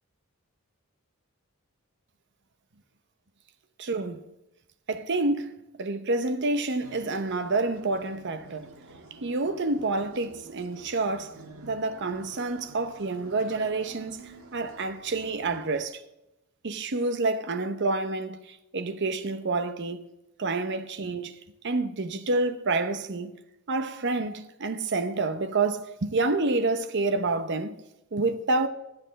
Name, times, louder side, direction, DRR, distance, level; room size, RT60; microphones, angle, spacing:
voice 1, 3.8-4.2 4.9-5.5 5.8-8.7 9.1-11.4 11.6-16.0 16.6-20.1 20.4-21.4 21.6-23.4 23.7-27.8 28.1-28.7, right 3 dB, 55° right, 0.8 m, -28 dB
sound 1, 6.8-15.8, right 3 dB, 70° right, 1.6 m, -49 dB
13.5 x 8.1 x 4.1 m
head